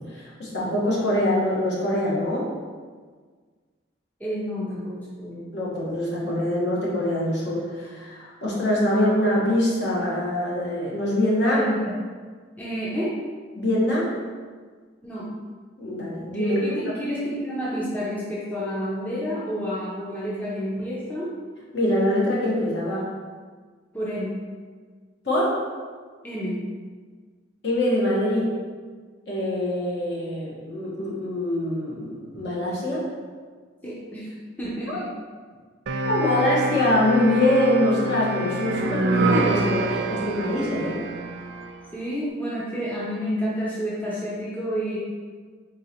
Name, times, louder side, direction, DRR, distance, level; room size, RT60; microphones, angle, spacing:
voice 1, 0.0-2.5 5.5-11.6 13.6-14.1 15.8-16.6 21.7-23.0 25.2-25.6 27.6-28.5 29.3-33.0 34.9-35.0 36.0-41.0, left 1 dB, 65° left, -5 dB, 1.2 m, -24 dB
voice 2, 4.2-5.5 11.4-11.9 12.6-13.2 15.0-15.3 16.3-21.3 23.9-24.4 26.2-26.6 33.8-35.1 41.9-45.0, equal, 10° left, -7 dB, 0.6 m, -29 dB
sound 1, 35.9-41.8, right 2 dB, 65° right, 0.3 m, -26 dB
3.8 x 3.8 x 2.9 m, 1.5 s
head